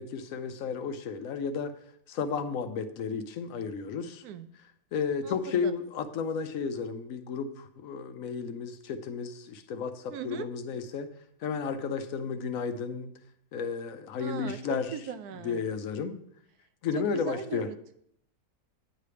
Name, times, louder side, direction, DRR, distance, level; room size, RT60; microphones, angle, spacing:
voice 1, 0.0-1.7 2.1-4.2 4.9-11.1 11.4-13.1 13.5-14.9 15.4-16.2 16.8-17.7, left 6 dB, 70° left, 9 dB, 1.0 m, -33 dB
voice 2, 5.2-5.7 10.1-10.5 14.2-15.6 16.9-17.9, right 8 dB, 85° right, 11 dB, 1.1 m, -39 dB
9.1 x 3.3 x 6.7 m, 0.70 s
omnidirectional pair, 1.6 m